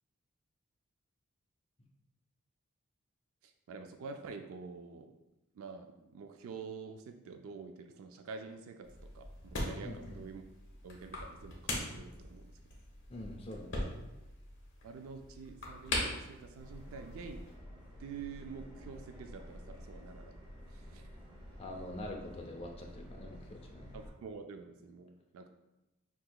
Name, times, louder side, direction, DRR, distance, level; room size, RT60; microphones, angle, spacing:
voice 1, 3.4-5.1 5.5-8.9 9.1-9.3 9.6-10.4 10.8-12.5 14.8-17.4 18.0-20.4 20.7-21.0 23.9-25.5, right 5 dB, 85° right, 6 dB, 0.3 m, -47 dB
sound 1, 8.8-17.6, left 1 dB, 60° left, 1.2 m, -41 dB
voice 2, 9.8-10.2 13.1-13.9 21.6-23.9, left 1 dB, 25° left, 0 dB, 0.5 m, -45 dB
Subway metro underground, 16.6-24.1, equal, 20° right, 0.7 m, -51 dB
6.0 x 2.8 x 2.3 m, 0.96 s
head